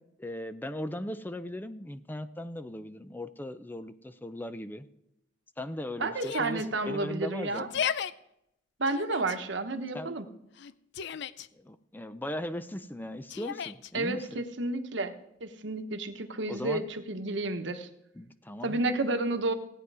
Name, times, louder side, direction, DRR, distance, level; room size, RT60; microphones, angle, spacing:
voice 1, 0.2-4.9 5.6-7.7 9.9-10.1 11.5-14.4 16.5-16.8 18.1-18.8, left 1 dB, 10° left, 12 dB, 0.5 m, -38 dB
voice 2, 6.0-7.7 8.8-10.3 13.9-15.1 15.4-17.9 18.6-19.5, right 2 dB, 65° right, 8 dB, 1.2 m, -31 dB
Yell, 6.2-6.7 7.5-8.1 8.9-9.4 10.6-11.5 13.3-13.9, left 8 dB, 65° left, 0.5 m, -35 dB
17.0 x 9.4 x 4.8 m, 0.81 s
head